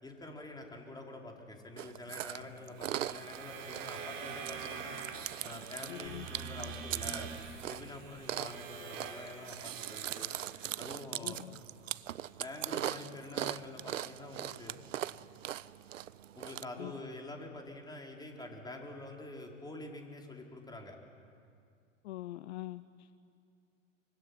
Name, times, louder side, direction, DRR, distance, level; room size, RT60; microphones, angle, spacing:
voice 1, 0.0-5.0 5.4-7.3 7.7-10.3 10.8-11.4 12.4-14.8 16.3-21.0, left 2 dB, 10° left, 1 dB, 4.7 m, -46 dB
Chewing mastication, 1.8-16.6, right 12 dB, 75° right, 0.8 m, -41 dB
sound 1, 2.7-10.5, right 6 dB, 50° right, 6.1 m, -45 dB
voice 2, 5.9-6.3 11.2-11.6 16.8-17.0 22.0-23.2, left 16 dB, 55° left, 15 dB, 0.8 m, -44 dB
25.0 x 24.0 x 9.9 m, 2.3 s
hypercardioid pair, 95°, 38 cm